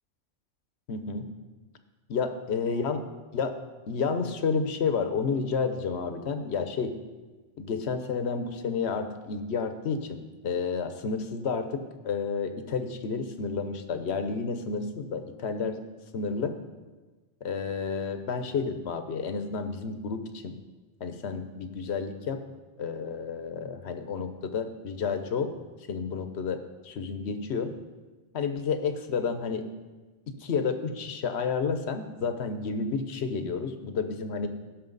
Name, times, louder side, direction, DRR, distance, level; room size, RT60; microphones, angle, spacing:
voice 1, 0.9-1.3 2.1-3.0 3.3-3.5 3.9-6.9 7.6-15.8 16.1-16.5 17.4-20.5 21.0-22.4 22.8-25.5 25.9-27.7 28.3-29.6 30.4-34.5, left 5 dB, 60° left, 8 dB, 1.1 m, -30 dB
16.5 x 6.5 x 4.0 m, 1.3 s
omnidirectional pair, 1.3 m